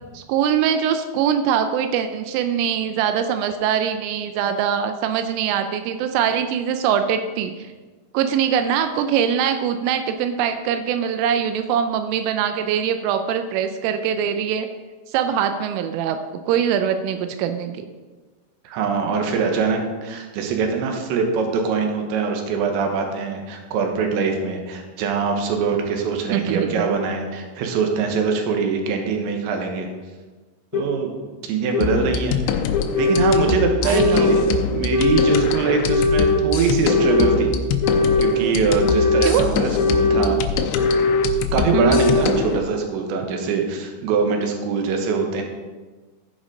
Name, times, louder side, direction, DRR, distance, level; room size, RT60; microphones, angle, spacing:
voice 1, 0.1-7.7 8.1-14.7 15.1-16.2 16.5-17.9 26.3-26.8 33.8-34.3 39.2-39.4 41.7-42.0, right 8 dB, 90° right, 8 dB, 3.2 m, -22 dB
voice 2, 18.6-29.9 30.7-31.1 31.4-32.6 33.0-37.5 38.2-40.4 41.3-45.4, right 5 dB, 75° right, 3 dB, 3.3 m, -23 dB
sound 1, 30.7-30.8 31.7-31.8 32.7-33.5 33.9-34.5 34.9-35.5 35.9-36.4 36.9-37.4 37.8-38.4 38.8-39.4 39.8-40.3 40.7-41.3 41.7-42.3, left 3 dB, 60° left, 2.7 m, -19 dB
sound 2, 31.8-42.6, left 8 dB, 85° left, 2.5 m, -25 dB
15.0 x 5.1 x 5.1 m, 1.3 s
omnidirectional pair, 5.6 m